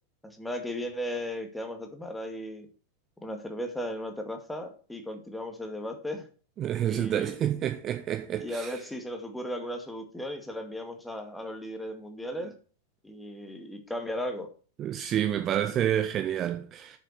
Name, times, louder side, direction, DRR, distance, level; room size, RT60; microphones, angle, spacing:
voice 1, 0.2-2.7 3.2-6.3 6.9-7.3 8.3-12.5 13.0-14.5, equal, 5° left, 2.2 m, -36 dB
voice 2, 6.6-8.7 14.8-17.0, right 11 dB, 30° right, 1.4 m, -29 dB
7.9 x 7.1 x 8.1 m
figure-of-eight pair, 90°, 0 cm